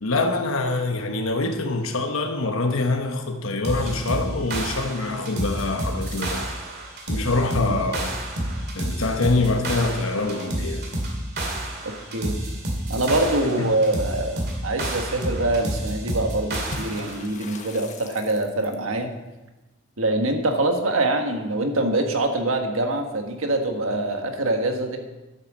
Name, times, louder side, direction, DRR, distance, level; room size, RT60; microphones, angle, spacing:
voice 1, 0.0-6.5 7.1-8.1 8.7-10.8 13.4-13.8, left 3 dB, 80° left, 1.1 m, -25 dB
sound 1, 3.6-17.2, right 1 dB, 55° right, 2.4 m, -29 dB
voice 2, 12.9-19.1 20.0-25.0, right 2 dB, 85° right, 1.6 m, -24 dB
Water / Splash splatter, 16.5-18.9, left 3 dB, 35° left, 1.2 m, -40 dB
11.0 x 8.5 x 6.3 m
head